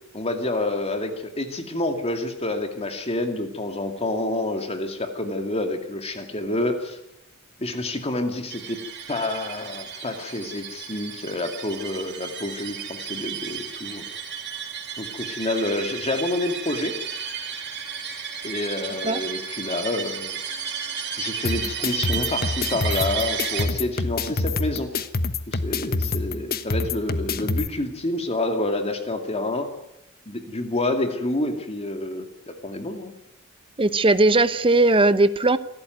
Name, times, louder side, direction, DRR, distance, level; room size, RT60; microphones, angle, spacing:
voice 1, 0.1-7.0 7.6-8.8 9.1-14.1 15.0-17.0 18.4-20.4 21.2-24.9 25.5-29.7 30.3-33.1, left 2 dB, 30° left, 2.4 m, -28 dB
sound 1, 8.5-23.6, right 7 dB, 55° right, 3.2 m, -33 dB
sound 2, 21.4-27.7, left 3 dB, 45° left, 1.2 m, -27 dB
voice 2, 33.8-35.6, right 2 dB, 25° right, 0.9 m, -18 dB
26.5 x 13.5 x 9.4 m
head